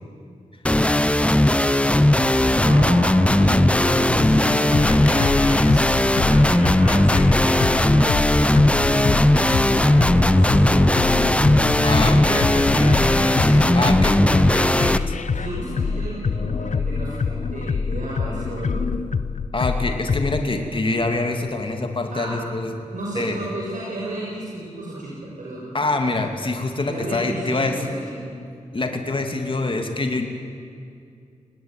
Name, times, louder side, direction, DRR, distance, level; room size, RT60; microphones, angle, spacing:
sound 1, 0.6-15.0, left 1 dB, 10° left, 0.9 m, -17 dB
sound 2, 2.4-20.4, left 5 dB, 65° left, 0.8 m, -26 dB
voice 1, 2.6-6.0 6.2-10.9 11.4-18.9 22.1-22.3 22.9-25.6 26.9-28.4, right 1 dB, 75° right, -5 dB, 6.3 m, -33 dB
voice 2, 11.8-12.5 13.7-14.2 19.5-22.7 23.2-23.4 25.7-27.8 28.7-30.3, left 2 dB, 40° left, 4 dB, 2.7 m, -25 dB
26.5 x 19.5 x 9.2 m, 2.4 s
cardioid pair, 65°, 13 cm